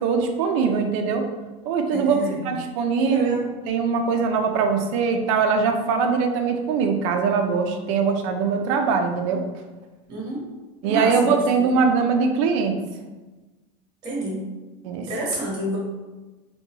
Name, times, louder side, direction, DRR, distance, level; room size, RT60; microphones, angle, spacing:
voice 1, 0.0-1.2 1.7-2.2 2.4-3.4 3.7-9.4 10.8-12.8 14.8-15.1, right 5 dB, 70° right, 5 dB, 0.5 m, -22 dB
voice 2, 1.9-2.5 3.0-3.5 10.1-10.4 10.8-11.7 14.0-14.4 15.0-15.8, right 1 dB, 25° right, -4 dB, 1.1 m, -29 dB
3.7 x 2.2 x 2.7 m, 1.2 s
supercardioid pair, 160°, 17 cm